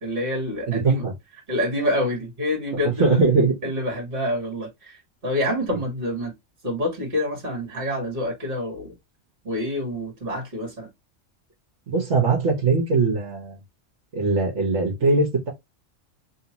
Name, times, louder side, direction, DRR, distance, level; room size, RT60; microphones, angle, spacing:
voice 1, 0.0-1.0 1.5-3.2 3.6-6.3 6.6-9.0 9.4-10.9, left 1 dB, 45° right, 1.9 m, -27 dB
voice 2, 0.7-1.1 2.8-3.5 11.9-13.6 14.1-15.5, right 3 dB, 60° right, 1.5 m, -21 dB
3.3 x 2.9 x 2.8 m
omnidirectional pair, 1.4 m